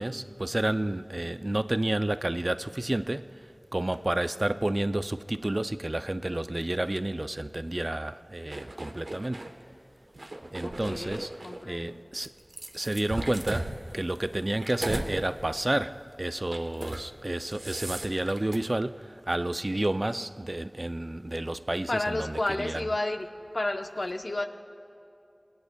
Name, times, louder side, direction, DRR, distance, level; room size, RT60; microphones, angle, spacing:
voice 1, 0.0-9.6 10.5-12.3 12.7-22.9, right 1 dB, 40° right, 0.3 m, -30 dB
sound 1, 8.5-9.5 10.1-11.6 12.2-15.1 15.6-15.8 16.4-17.1 17.4-18.6, right 1 dB, 75° right, 1.0 m, -37 dB
voice 2, 10.6-12.0 21.9-23.3 23.5-24.4, left 2 dB, 60° left, 0.8 m, -31 dB
26.0 x 19.5 x 2.3 m
wide cardioid pair, 55°, 0 cm